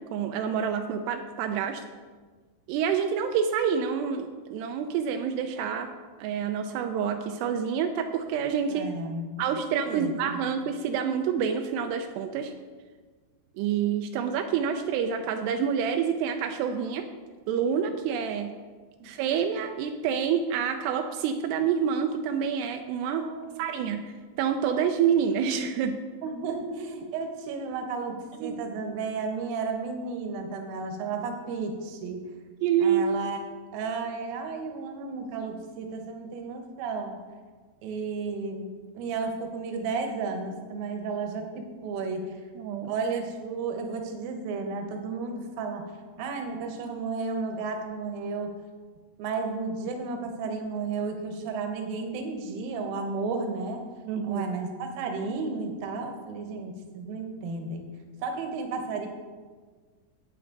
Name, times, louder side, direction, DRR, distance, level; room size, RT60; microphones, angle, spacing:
voice 1, 0.0-1.8 2.7-5.9 6.2-8.9 9.4-12.5 13.6-17.1 17.5-18.5 19.0-23.2 23.6-26.0 28.4-28.6 32.6-33.1 42.6-43.0 54.1-54.4, right 7 dB, 85° right, 5 dB, 2.7 m, -27 dB
voice 2, 8.7-9.3 9.6-10.5 23.1-23.7 26.2-32.3 32.8-33.4 33.7-37.2 37.8-42.3 42.8-45.9 46.2-48.6 49.2-53.8 54.2-57.9 58.2-59.1, right 4 dB, 70° right, 4 dB, 2.7 m, -33 dB
11.0 x 8.8 x 3.9 m, 1.4 s
omnidirectional pair, 4.8 m